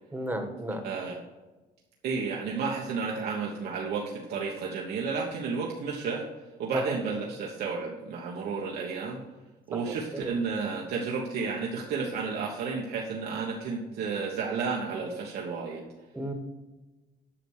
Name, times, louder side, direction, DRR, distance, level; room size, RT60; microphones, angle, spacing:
voice 1, 0.1-0.8 6.7-6.9 9.7-10.3 16.1-16.3, right 1 dB, 10° right, 5 dB, 1.5 m, -34 dB
voice 2, 0.8-1.1 2.0-6.3 6.6-9.2 9.7-15.9, right 5 dB, 70° right, -1 dB, 1.3 m, -32 dB
8.9 x 6.0 x 6.6 m, 1.1 s
cardioid pair, 110°, 17 cm